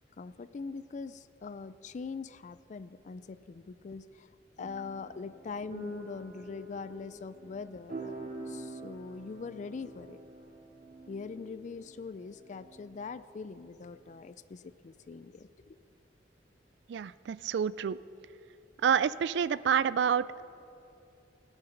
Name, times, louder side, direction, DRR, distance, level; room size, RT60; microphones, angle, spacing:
voice 1, 0.2-4.3 4.6-8.1 8.4-10.2 11.1-15.8, left 4 dB, 45° left, 14 dB, 0.4 m, -42 dB
sound 1, 4.6-14.2, right 2 dB, 45° right, 2.1 m, -47 dB
voice 2, 16.9-18.0 18.8-20.4, right 7 dB, 75° right, 18 dB, 0.3 m, -28 dB
17.5 x 8.1 x 5.8 m, 2.8 s
head